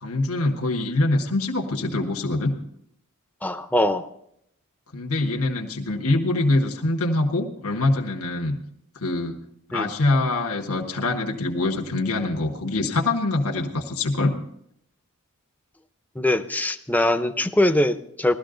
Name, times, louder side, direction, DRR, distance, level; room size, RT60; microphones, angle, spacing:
voice 1, 0.0-2.5 4.9-8.6 8.9-9.4 9.7-14.3, left 2 dB, 75° left, 2 dB, 1.4 m, -24 dB
voice 2, 3.4-4.1 9.7-9.9 16.2-18.3, left 1 dB, 5° left, 8 dB, 0.6 m, -22 dB
17.0 x 13.0 x 3.9 m, 0.73 s
head